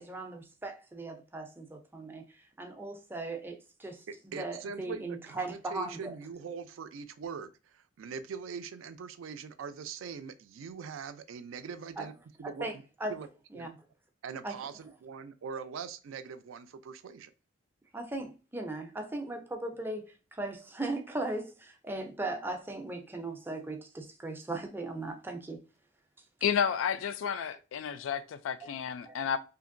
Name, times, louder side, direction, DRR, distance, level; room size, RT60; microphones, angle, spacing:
voice 1, 0.0-2.2 2.6-6.1 12.0-12.1 12.4-13.1 13.5-13.7 14.4-14.6 17.9-25.6, right 2 dB, 10° right, 0.4 m, -38 dB
voice 2, 4.3-12.1 12.4-12.7 13.1-13.3 13.5-13.8 14.2-17.3, right 6 dB, 90° right, 0.4 m, -42 dB
voice 3, 26.4-28.2 28.5-29.4, left 7 dB, 80° left, 0.3 m, -31 dB
2.8 x 2.5 x 2.5 m
head